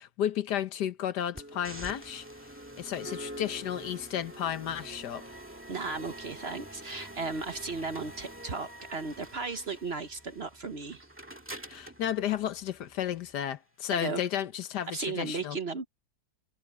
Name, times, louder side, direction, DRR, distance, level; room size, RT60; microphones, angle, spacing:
voice 1, 0.0-2.2 2.8-5.2 11.7-15.6, left 10 dB, 75° left, 1.5 m, -33 dB
sound 1, 1.3-13.3, right 1 dB, 5° right, 1.8 m, -46 dB
voice 2, 5.7-11.1 13.9-14.2 14.9-15.9, right 4 dB, 45° right, 1.0 m, -35 dB
omnidirectional pair, 1.8 m